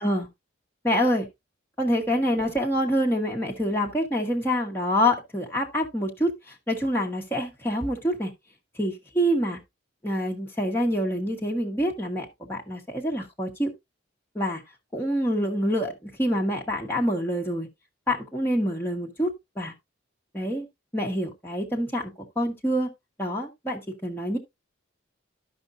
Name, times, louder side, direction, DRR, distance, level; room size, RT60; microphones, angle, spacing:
voice 1, 0.8-1.3 1.8-8.3 8.8-9.6 10.0-13.7 14.3-14.6 14.9-17.7 18.1-19.3 19.6-19.7 20.3-20.7 20.9-22.9 23.2-24.4, equal, 10° left, 1.3 m, -26 dB
13.5 x 5.2 x 2.6 m
head